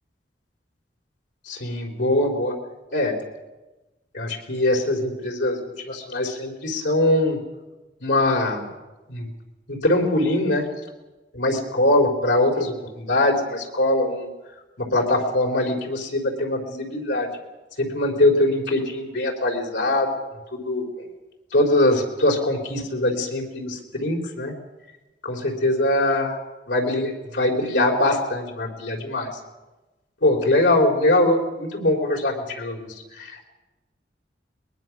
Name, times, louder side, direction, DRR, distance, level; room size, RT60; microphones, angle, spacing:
voice 1, 1.5-2.6 2.9-3.2 4.1-7.4 8.0-8.7 9.1-9.3 9.7-10.7 11.3-14.3 14.8-17.3 17.8-20.1 20.5-20.8 21.5-24.5 25.2-26.4 26.7-29.3 30.2-33.4, left 1 dB, 85° left, 1 dB, 4.0 m, -22 dB
22.5 x 20.5 x 6.1 m, 1.1 s
head